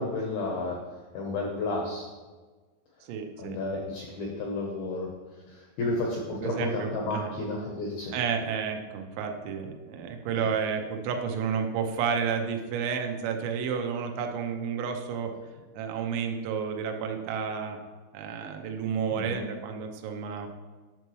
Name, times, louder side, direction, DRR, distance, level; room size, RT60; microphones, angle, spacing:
voice 1, 0.0-2.1 3.4-8.1 10.3-10.5 19.1-19.4, left 2 dB, 85° left, -1 dB, 2.2 m, -32 dB
voice 2, 3.0-3.6 6.4-7.3 8.1-15.3 15.7-17.8 18.1-20.5, right 6 dB, 90° right, 4 dB, 3.5 m, -31 dB
10.5 x 6.8 x 3.1 m, 1.3 s
omnidirectional pair, 5.7 m